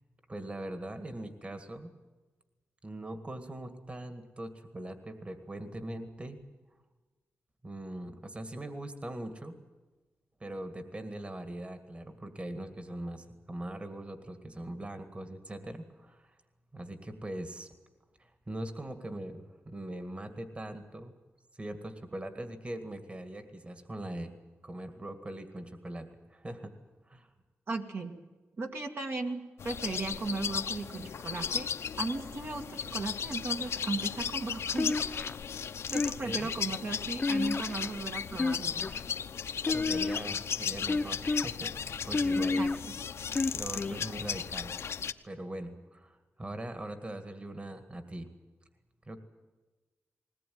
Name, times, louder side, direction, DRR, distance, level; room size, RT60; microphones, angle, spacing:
voice 1, 0.3-1.9 2.8-6.4 7.6-9.6 10.4-16.3 16.7-17.7 18.2-21.1 21.5-24.3 24.6-26.7 27.0-27.3 36.2-36.5 39.6-42.7 43.5-44.7 45.2-48.3 49.1-49.2, right 1 dB, 25° right, 8 dB, 2.0 m, -41 dB
voice 2, 27.7-28.2 28.6-31.7 32.0-35.0 35.9-38.8 42.3-42.9, right 3 dB, 55° right, 3 dB, 2.1 m, -36 dB
sound 1, 29.6-45.1, left 7 dB, 70° left, 0.9 m, -36 dB
sound 2, 34.8-35.4 35.9-36.5 37.2-37.9 38.3-39.0 39.6-40.3 40.9-41.5 42.1-42.8 43.3-44.0, left 3 dB, 30° left, 0.8 m, -30 dB
20.5 x 19.0 x 9.5 m, 1.2 s
wide cardioid pair, 110°, 5 cm